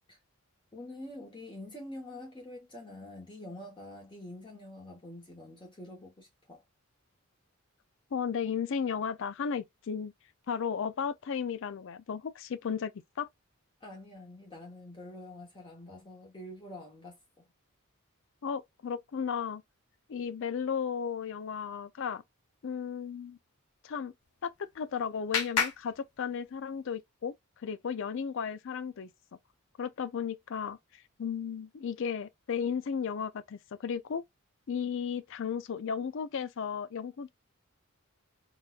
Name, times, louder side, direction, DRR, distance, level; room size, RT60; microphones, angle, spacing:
voice 1, 0.7-6.6 13.8-17.5, left 1 dB, 20° left, 1.0 m, -46 dB
voice 2, 8.1-10.1 10.5-12.9 13.2-13.3 18.4-19.6 20.1-22.2 22.6-23.4 23.8-24.1 24.4-27.3 27.6-29.1 29.8-34.2 34.7-37.3, left 7 dB, 60° left, 0.4 m, -34 dB
Clapping, 24.2-26.8, left 6 dB, 90° left, 0.8 m, -35 dB
3.9 x 2.2 x 2.3 m
head